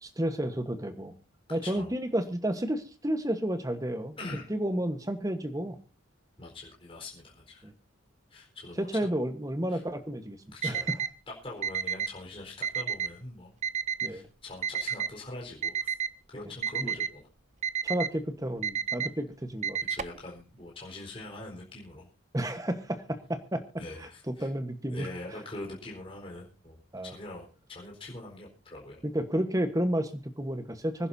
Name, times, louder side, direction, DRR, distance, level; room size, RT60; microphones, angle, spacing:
voice 1, 0.0-1.1 1.5-4.1 4.5-5.8 7.6-7.7 8.8-10.4 10.6-10.8 14.0-14.3 16.8-16.9 17.8-19.8 22.3-23.6 24.3-25.1 26.9-27.1 29.0-31.1, right 1 dB, 15° right, 9 dB, 1.2 m, -31 dB
voice 2, 1.6-1.9 4.2-4.5 6.4-7.7 8.3-9.1 9.7-9.8 10.5-11.0 11.3-13.6 14.0-15.9 16.3-17.3 19.9-22.1 23.8-24.5 24.9-29.0, left 2 dB, 25° left, -2 dB, 4.4 m, -43 dB
Alarm, 10.6-11.1 11.6-12.1 12.6-13.1 13.6-14.1 14.6-15.1 15.6-16.1 16.6-17.1 17.6-18.1 18.6-19.1 19.6-20.2, right 7 dB, 35° right, 0.6 m, -30 dB
25.5 x 11.0 x 2.7 m, 0.33 s
head